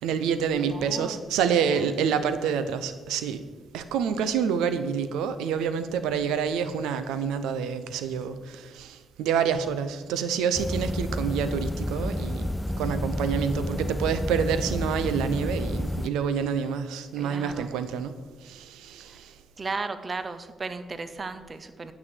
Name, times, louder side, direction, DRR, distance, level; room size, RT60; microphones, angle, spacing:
voice 1, 0.0-3.4 3.7-12.5 12.8-18.1 18.4-19.4, right 7 dB, 65° right, 11 dB, 0.7 m, -27 dB
voice 2, 0.6-2.0 17.2-17.7 19.1-19.2 19.6-21.9, right 4 dB, 35° right, 10 dB, 0.8 m, -36 dB
sound 1, 10.5-16.1, left 1 dB, 10° left, 0.4 m, -30 dB
9.6 x 6.3 x 7.2 m, 1.4 s
figure-of-eight pair, 40°, 0 cm